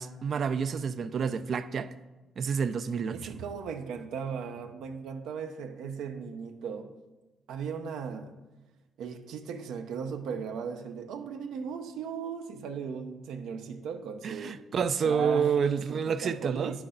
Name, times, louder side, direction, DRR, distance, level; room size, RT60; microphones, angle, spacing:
voice 1, 0.0-1.9 2.4-3.2 14.2-16.7, right 6 dB, 55° right, 0.4 m, -29 dB
voice 2, 3.1-6.9 7.5-8.4 9.0-14.6 15.0-16.9, right 6 dB, 85° right, 0.7 m, -37 dB
9.9 x 6.1 x 3.8 m
cardioid pair, 90°, 0 cm